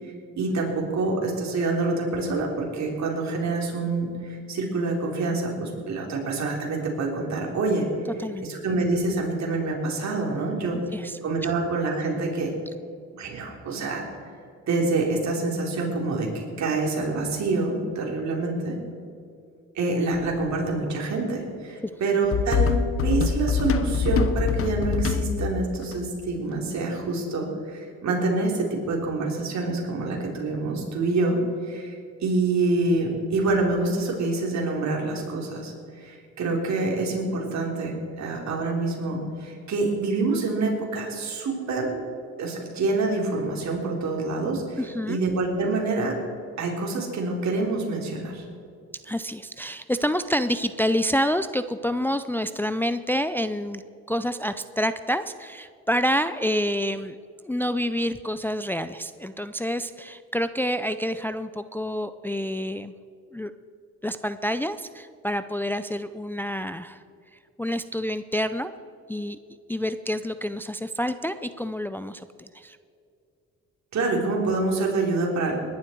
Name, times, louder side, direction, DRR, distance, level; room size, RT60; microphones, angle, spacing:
voice 1, 0.0-7.9 8.4-10.8 11.2-12.5 13.1-14.0 14.7-18.8 19.7-42.0 42.4-44.8 45.1-46.2 46.6-48.5 73.9-75.6, right 3 dB, 65° right, 0 dB, 3.9 m, -26 dB
sound 1, 20.1-20.4 22.3-25.9, left 6 dB, 50° left, 0.9 m, -24 dB
voice 2, 44.8-45.2 49.0-53.8 54.1-57.2 57.4-62.9 63.3-63.5 64.0-67.0 67.3-68.7 69.1-69.4 69.7-72.8, equal, 5° left, 11 dB, 0.5 m, -28 dB
20.0 x 11.5 x 4.6 m, 2.4 s
cardioid pair, 90°, 30 cm